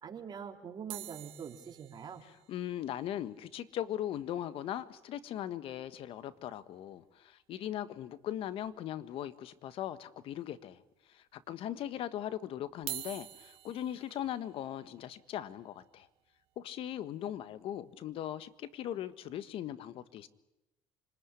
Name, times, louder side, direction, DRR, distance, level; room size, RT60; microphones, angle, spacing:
voice 1, 0.0-2.2, right 7 dB, 45° right, 4 dB, 3.8 m, -44 dB
sound 1, 0.9-5.2 5.5-5.6 5.8-6.0 6.4-6.5 7.9-8.0 8.6-9.2 9.7-9.8 10.6-10.7 12.7-18.8 19.4-19.6, right 14 dB, 70° right, 2.1 m, -49 dB
voice 2, 2.5-10.8 11.1-16.1 16.6-20.3, left 11 dB, 65° left, 13 dB, 1.6 m, -39 dB
26.0 x 20.5 x 10.0 m, 0.92 s
supercardioid pair, 85°, 10 cm